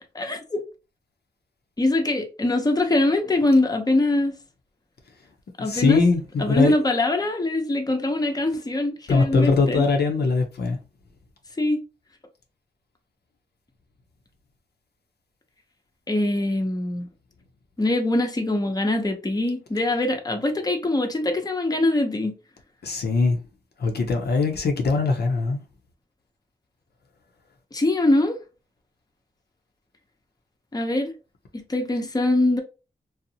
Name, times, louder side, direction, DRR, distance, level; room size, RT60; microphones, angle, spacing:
voice 1, 0.1-0.6 1.8-4.3 5.6-6.0 6.4-9.8 11.6-11.8 16.1-17.1 17.8-22.4 27.7-28.4 30.7-31.1 31.5-32.6, left 2 dB, 20° left, 0.6 m, -23 dB
voice 2, 5.6-6.7 9.1-10.8 22.8-23.4 23.8-25.6, left 4 dB, 70° left, 0.6 m, -21 dB
2.6 x 2.0 x 2.7 m
cardioid pair, 40°, 18 cm